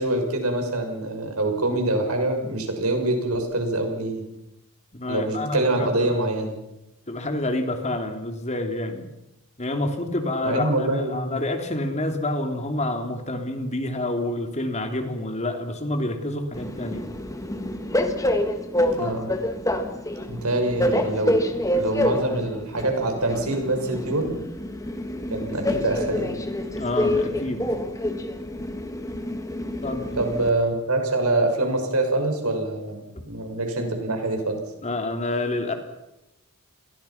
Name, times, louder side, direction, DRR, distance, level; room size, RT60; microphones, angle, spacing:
voice 1, 0.0-4.2 5.1-6.6 10.4-11.4 18.9-19.3 20.3-21.4 21.7-24.3 25.3-26.3 30.2-34.6, right 2 dB, 85° right, 4 dB, 6.1 m, -25 dB
voice 2, 4.9-6.1 7.1-9.0 9.6-17.1 26.8-27.7 29.8-30.2 34.8-35.7, left 1 dB, 30° left, 5 dB, 3.0 m, -28 dB
Train, 16.5-30.5, left 1 dB, 15° left, 1.8 m, -27 dB
30.0 x 22.0 x 5.9 m, 0.89 s
head